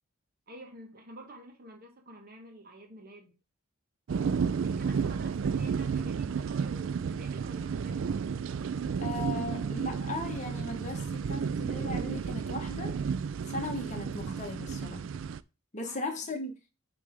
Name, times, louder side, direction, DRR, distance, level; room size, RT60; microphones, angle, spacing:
voice 1, 0.5-3.4 4.6-8.2 15.8-16.2, right 1 dB, 45° right, 1.5 m, -49 dB
sound 1, 4.1-15.4, right 6 dB, 60° right, 0.3 m, -32 dB
voice 2, 9.0-13.0 13.4-15.1 15.7-16.5, left 2 dB, 35° left, 1.4 m, -37 dB
6.6 x 3.3 x 5.1 m
head